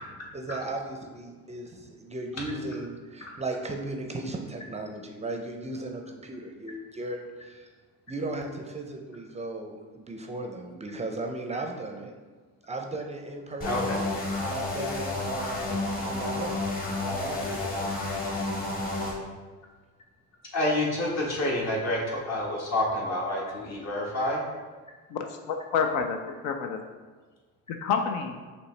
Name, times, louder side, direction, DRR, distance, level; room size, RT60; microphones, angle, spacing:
voice 1, 0.3-7.7 8.1-12.1 12.6-14.0 14.4-16.6 17.0-18.1, right 2 dB, 20° right, 2 dB, 0.4 m, -36 dB
voice 2, 13.6-14.0 20.5-24.4, left 1 dB, 50° left, -3 dB, 1.4 m, -28 dB
sound 1, 13.6-19.1, left 2 dB, 30° left, 1.2 m, -31 dB
voice 3, 25.1-26.8 27.7-28.4, left 6 dB, 85° left, 4 dB, 0.5 m, -29 dB
5.3 x 3.1 x 3.2 m, 1.4 s
cardioid pair, 95°, 33 cm